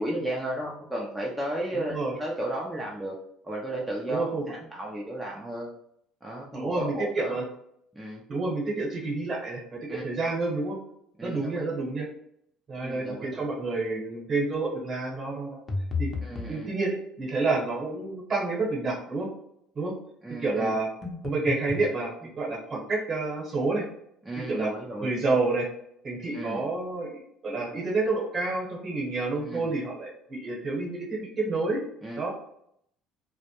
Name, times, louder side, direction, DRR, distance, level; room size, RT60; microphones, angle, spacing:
voice 1, 0.0-3.2 3.4-5.7 6.2-7.4 7.9-8.2 9.9-10.0 11.2-11.7 12.8-13.5 16.2-16.7 20.2-20.8 24.2-25.2 26.3-26.6 29.4-29.7 32.0-32.3, right 1 dB, 10° right, -3 dB, 0.4 m, -34 dB
voice 2, 1.7-2.1 4.1-4.4 6.5-7.4 8.3-10.8 11.2-12.1 12.7-15.6 16.0-16.1 16.5-19.3 19.7-19.9 20.4-20.9 21.2-22.1 22.4-23.8 24.4-24.7 25.0-25.7 26.0-31.8 32.1-32.3, right 3 dB, 40° right, -1 dB, 1.0 m, -29 dB
sound 1, 15.7-16.6 21.0-21.9, left 4 dB, 35° left, 0.6 m, -32 dB
2.1 x 2.1 x 2.8 m, 0.71 s
supercardioid pair, 75°, 0 cm